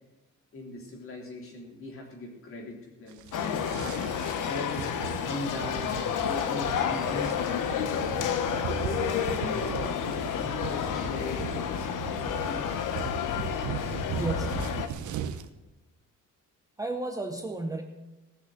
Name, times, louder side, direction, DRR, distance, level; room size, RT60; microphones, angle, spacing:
voice 1, 0.5-3.7 4.4-7.9 8.6-12.8, left 2 dB, 45° left, 1 dB, 3.3 m, -39 dB
sound 1, 3.1-15.5, right 8 dB, 65° right, 1.0 m, -38 dB
sound 2, 3.3-14.9, left 8 dB, 75° left, 1.2 m, -30 dB
voice 2, 14.2-14.7 16.8-17.8, right 2 dB, 10° right, 4 dB, 0.7 m, -33 dB
18.0 x 6.4 x 7.5 m, 1.1 s
cardioid pair, 175°, 31 cm